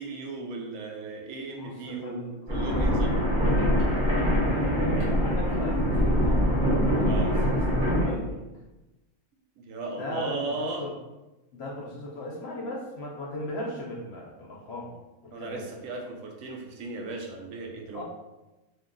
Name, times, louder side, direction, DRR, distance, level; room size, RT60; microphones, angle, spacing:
voice 1, 0.0-2.2 2.5-3.2 7.0-7.3 9.6-10.9 15.3-18.0, right 3 dB, 75° right, 1 dB, 1.0 m, -36 dB
voice 2, 1.6-2.3 4.0-6.5 7.0-7.4 7.8-8.4 10.0-10.9 11.5-14.9 15.2-15.6 17.9-18.0, left 1 dB, 60° left, -2 dB, 0.8 m, -37 dB
sound 1, 2.5-8.0, equal, 40° right, 1.2 m, -24 dB
2.6 x 2.3 x 3.7 m, 1.0 s
omnidirectional pair, 1.4 m